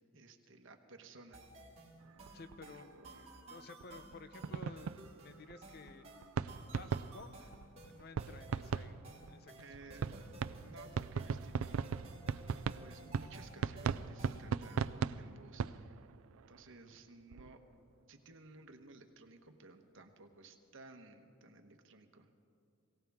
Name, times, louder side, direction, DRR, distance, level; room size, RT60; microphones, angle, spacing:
voice 1, 0.1-1.4 2.6-3.4 9.5-10.0 10.6-12.0 12.8-16.1 16.5-17.6 18.1-22.3, right 2 dB, 65° right, 6 dB, 1.2 m, -56 dB
sound 1, 1.3-14.9, right 1 dB, 30° right, 2.7 m, -55 dB
sound 2, 2.0-2.6 3.8-3.9 4.1-4.2 4.4-16.7 17.3-17.6, right 6 dB, 85° right, 0.4 m, -39 dB
voice 2, 2.3-2.9 3.5-6.1 6.4-7.5 7.8-9.5, left 3 dB, 50° left, 11 dB, 0.7 m, -54 dB
22.5 x 17.0 x 3.6 m, 2.6 s
head